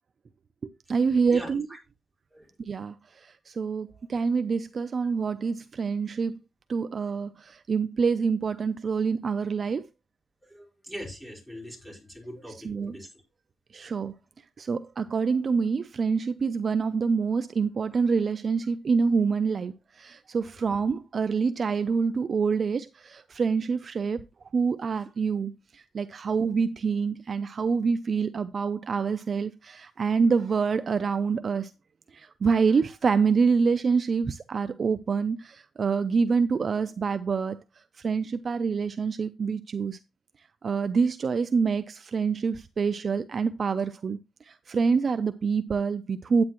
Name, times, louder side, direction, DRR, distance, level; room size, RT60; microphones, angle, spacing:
voice 1, 0.6-1.7 2.6-2.9 3.2-6.4 6.7-9.8 12.6-13.0 13.7-14.1 14.6-24.2 24.5-31.7 32.1-37.6 38.0-40.0 40.6-44.2 44.5-46.4, right 5 dB, 40° right, 0.5 m, -26 dB
voice 2, 1.3-1.8 2.3-2.5 3.9-4.1 10.4-13.1, equal, ahead, 5.0 m, -42 dB
9.6 x 9.3 x 3.0 m
cardioid pair, 115°, 0 cm